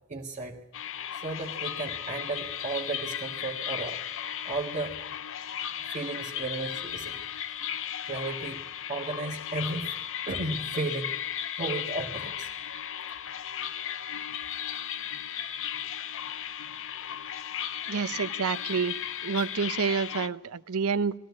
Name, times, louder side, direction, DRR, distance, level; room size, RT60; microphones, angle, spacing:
voice 1, 0.1-0.6 1.1-4.0 4.4-5.0 5.9-7.2 8.0-8.6 8.9-10.0 10.3-11.1 11.5-12.5 19.4-19.5, right 3 dB, 35° right, -2 dB, 1.6 m, -34 dB
sound 1, 0.7-20.3, left 9 dB, 60° left, 0.7 m, -35 dB
voice 2, 17.9-18.9 19.2-21.1, right 5 dB, 90° right, 14 dB, 0.7 m, -28 dB
20.5 x 14.5 x 9.5 m, 0.99 s
head